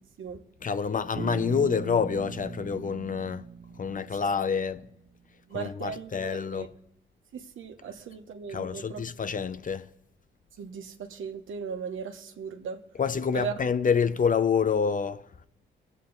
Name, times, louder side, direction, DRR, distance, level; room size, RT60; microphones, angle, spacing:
voice 1, 0.6-3.5 3.7-4.9 5.5-6.7 8.5-9.9 13.0-15.5, left 6 dB, 40° left, 0.7 m, -27 dB
Bass guitar, 1.2-5.1, right 6 dB, 40° right, 0.8 m, -40 dB
voice 2, 5.5-6.7 7.3-9.0 10.6-12.8 13.3-13.6, right 6 dB, 80° right, 1.3 m, -37 dB
21.5 x 8.4 x 4.0 m
cardioid pair, 65°, 20 cm